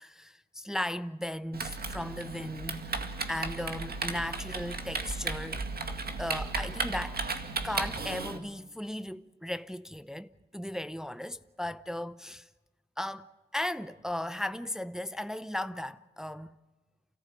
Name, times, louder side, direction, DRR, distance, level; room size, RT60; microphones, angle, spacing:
voice 1, 0.0-5.6 6.2-7.2 7.6-12.5 13.0-16.6, left 1 dB, 5° right, 0.6 m, -36 dB
Typing, 1.5-8.4, right 3 dB, 55° right, 2.1 m, -35 dB
29.0 x 14.5 x 8.1 m
cardioid pair, 70°, 19 cm